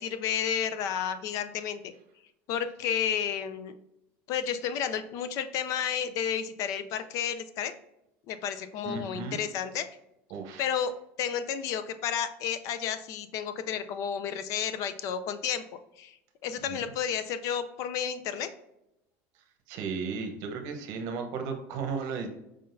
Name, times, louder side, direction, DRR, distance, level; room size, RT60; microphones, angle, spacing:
voice 1, 0.0-1.8 2.5-3.8 4.3-7.7 8.3-9.9 10.6-10.9 11.2-15.6 16.0-16.2 16.4-18.5, left 8 dB, 50° left, 11 dB, 0.5 m, -31 dB
voice 2, 8.8-9.4 10.3-10.8 16.7-16.8 19.7-22.3, right 5 dB, 60° right, 5 dB, 0.9 m, -35 dB
5.1 x 3.8 x 2.6 m, 0.86 s
supercardioid pair, 145°, 7 cm